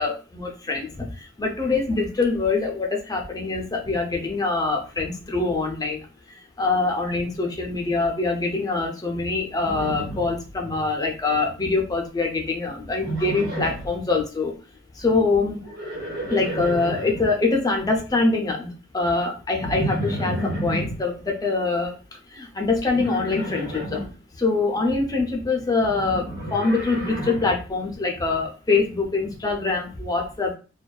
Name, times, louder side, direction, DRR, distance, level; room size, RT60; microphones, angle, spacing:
voice 1, 0.0-6.0 6.6-14.5 15.0-15.6 16.3-21.9 22.3-24.0 24.4-30.6, left 3 dB, 20° left, 1 dB, 0.5 m, -24 dB
Livestock farm animals working animals, 9.6-10.9 11.1-11.7 13.0-13.9 15.5-17.3 19.6-21.0 22.9-24.1 25.8-27.6, right 1 dB, 65° right, 1.3 m, -31 dB
2.5 x 2.2 x 2.2 m, 0.35 s
head